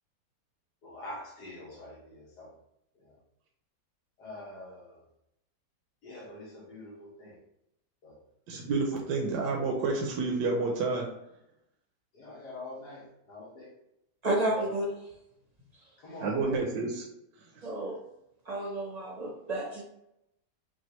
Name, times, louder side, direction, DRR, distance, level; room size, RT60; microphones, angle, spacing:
voice 1, 0.8-2.5 3.0-3.1 4.2-5.0 6.0-7.4 8.0-8.2 12.1-13.7 14.6-14.7 16.0-16.3, left 2 dB, 75° left, -5 dB, 1.9 m, -45 dB
voice 2, 8.5-11.0 16.2-17.0, right 3 dB, 80° right, 0 dB, 1.2 m, -29 dB
voice 3, 14.2-15.0 17.6-18.0 18.5-19.8, right 1 dB, 35° right, -1 dB, 0.7 m, -31 dB
6.1 x 2.4 x 3.0 m, 0.83 s
omnidirectional pair, 1.8 m